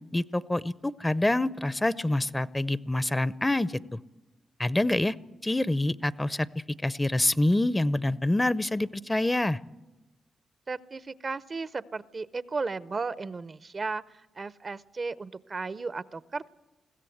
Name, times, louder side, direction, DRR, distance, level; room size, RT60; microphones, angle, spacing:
voice 1, 0.1-4.0 4.6-5.1 5.4-6.5 6.8-9.6, left 1 dB, 15° left, 18 dB, 0.6 m, -26 dB
voice 2, 10.7-16.6, right 4 dB, 45° right, 16 dB, 0.6 m, -35 dB
21.0 x 16.0 x 7.9 m, 1.1 s
supercardioid pair, 45°, 0 cm